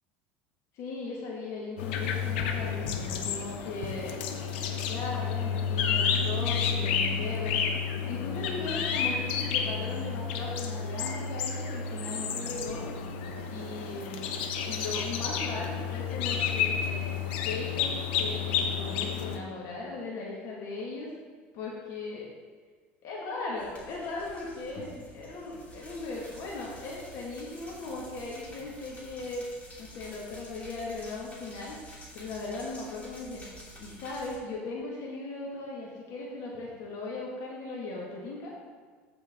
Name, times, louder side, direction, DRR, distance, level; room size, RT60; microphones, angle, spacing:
voice 1, 0.7-4.1 4.8-7.6 8.0-12.8 13.4-14.4 14.7-17.9 18.2-21.1 21.5-22.3 23.0-24.9 25.1-29.4 29.8-31.8 32.1-33.4 33.8-38.5, left 3 dB, 60° left, -4 dB, 2.1 m, -38 dB
sound 1, 1.8-19.4, left 6 dB, 80° left, 0.9 m, -31 dB
sound 2, 23.6-34.4, left 1 dB, 25° left, 2.8 m, -49 dB
14.0 x 5.2 x 3.8 m, 1.5 s
supercardioid pair, 95°, 6 cm